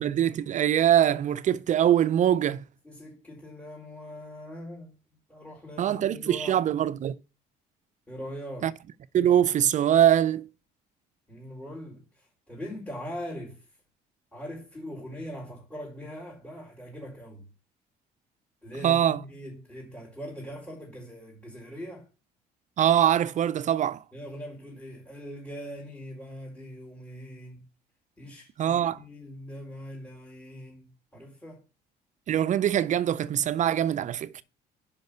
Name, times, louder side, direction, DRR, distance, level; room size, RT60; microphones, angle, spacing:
voice 1, 0.0-2.6 5.8-7.1 8.6-8.7 9.1-10.5 18.8-19.2 22.8-24.0 28.6-29.0 32.3-34.4, right 10 dB, 45° right, 0.5 m, -23 dB
voice 2, 2.8-5.0 5.3-6.6 8.1-8.7 11.3-13.6 14.3-17.4 18.6-22.1 24.1-27.6 28.2-31.6, equal, 10° left, 4.0 m, -41 dB
5.7 x 5.3 x 6.6 m
cardioid pair, 110°, 17 cm